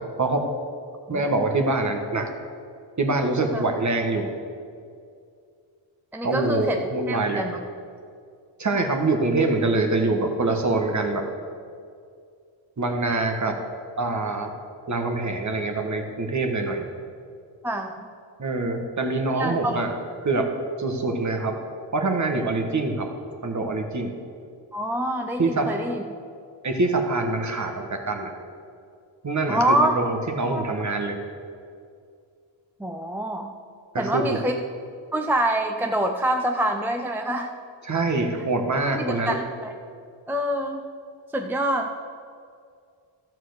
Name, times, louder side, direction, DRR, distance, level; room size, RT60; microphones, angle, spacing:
voice 1, 1.1-2.3 3.0-4.3 6.2-7.4 8.6-11.2 12.8-13.6 14.0-14.5 14.9-16.9 18.4-19.9 20.2-20.5 20.8-21.6 21.9-23.1 23.4-24.2 25.4-25.7 26.6-28.3 29.2-31.2 33.9-34.4 37.8-39.4, right 3 dB, 40° right, 4 dB, 1.5 m, -24 dB
voice 2, 6.1-7.6 17.6-18.1 19.3-19.8 24.7-26.0 29.5-30.0 30.5-30.6 32.8-33.5 34.0-34.6 35.1-37.5 39.0-39.7 40.3-40.8 41.3-41.9, right 1 dB, 5° right, 4 dB, 0.6 m, -26 dB
12.5 x 4.7 x 7.9 m, 2.3 s
cardioid pair, 80°, 46 cm